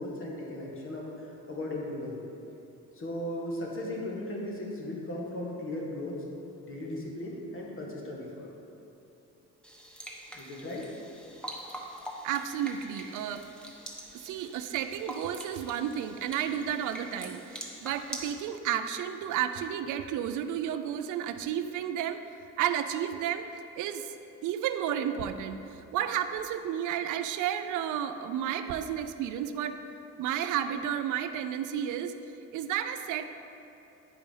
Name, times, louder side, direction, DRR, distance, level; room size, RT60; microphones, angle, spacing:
voice 1, 0.0-2.2 2.9-8.5 10.3-10.9, left 1 dB, 45° left, -2 dB, 1.8 m, -37 dB
sound 1, 9.6-18.3, equal, 5° left, 1.1 m, -44 dB
voice 2, 12.2-13.5 14.1-22.2 22.6-23.5 23.8-24.1 24.4-29.8 30.2-32.1 32.5-33.2, right 9 dB, 85° right, 9 dB, 0.5 m, -32 dB
9.5 x 4.8 x 5.4 m, 2.8 s
cardioid pair, 90°, 30 cm